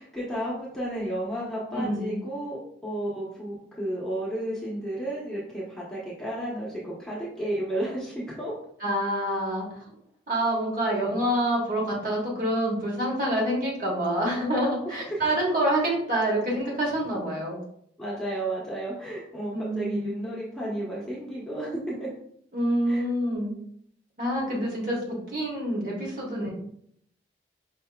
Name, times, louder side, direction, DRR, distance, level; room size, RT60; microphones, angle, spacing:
voice 1, 0.0-8.5 14.8-15.4 18.0-22.1 22.9-23.1, right 1 dB, 5° left, -7 dB, 1.0 m, -32 dB
voice 2, 1.7-2.2 8.8-9.8 10.3-17.6 19.5-20.1 22.5-23.5 24.2-26.5, right 1 dB, 50° right, -4 dB, 1.3 m, -27 dB
5.4 x 2.8 x 2.3 m, 0.69 s
head